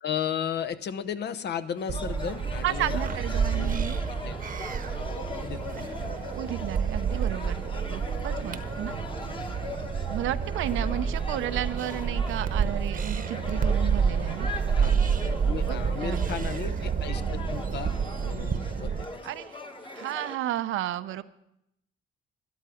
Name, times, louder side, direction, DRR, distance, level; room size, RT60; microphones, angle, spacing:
voice 1, 0.0-3.0 3.5-3.8 4.1-4.4 5.1-6.0 10.8-11.1 14.8-14.9 15.4-17.9 18.2-19.2, left 8 dB, 60° left, 10 dB, 0.7 m, -35 dB
sound 1, 1.8-20.4, left 3 dB, 25° left, 1.3 m, -40 dB
sound 2, 1.9-19.0, right 6 dB, 45° right, 0.9 m, -29 dB
voice 2, 2.6-4.0 6.4-7.6 7.9-9.0 10.1-14.5 15.7-16.3 19.2-19.6 19.9-21.2, right 13 dB, 80° right, 13 dB, 0.6 m, -33 dB
12.5 x 12.0 x 5.0 m, 0.83 s
cardioid pair, 90°, 20 cm